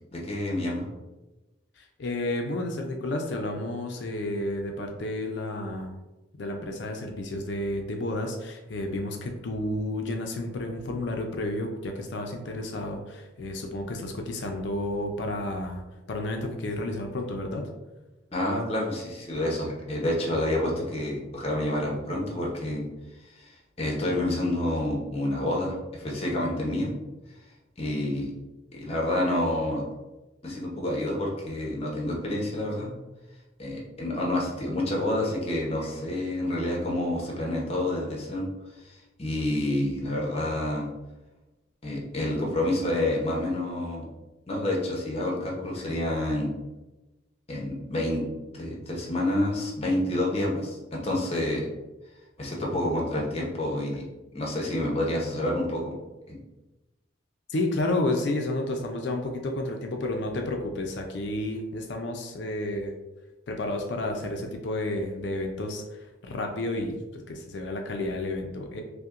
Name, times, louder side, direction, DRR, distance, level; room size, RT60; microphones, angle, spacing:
voice 1, 0.1-0.8 18.3-22.9 23.4-26.9 27.8-28.3 28.7-29.8 30.4-32.9 33.6-38.5 38.8-40.9 41.8-44.0 44.5-46.5 47.5-48.2 48.5-51.6 52.4-54.0 54.3-55.9 56.3-56.4, left 1 dB, 30° left, -2 dB, 0.7 m, -28 dB
voice 2, 1.8-5.9 6.4-15.8 16.1-17.7 57.5-62.9 63.5-65.8 66.2-68.8, left 1 dB, 55° left, 3 dB, 0.4 m, -31 dB
5.5 x 2.1 x 2.4 m, 1.1 s
head